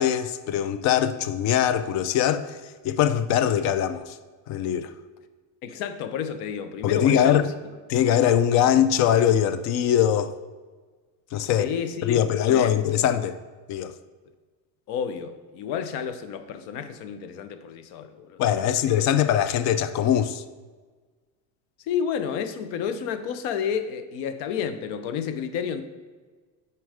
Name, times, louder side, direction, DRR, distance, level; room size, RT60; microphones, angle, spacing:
voice 1, 0.0-2.6 2.8-4.2 4.5-4.9 6.8-7.5 7.9-10.3 11.3-11.7 12.0-13.4 13.7-13.9 18.4-20.4, left 10 dB, 45° left, 0.4 m, -22 dB
voice 2, 5.6-7.5 11.5-12.2 12.5-12.7 14.9-18.4 18.9-19.0 21.8-25.8, left 7 dB, 75° left, 0.7 m, -31 dB
6.4 x 4.6 x 4.9 m
cardioid pair, 140°, 40 cm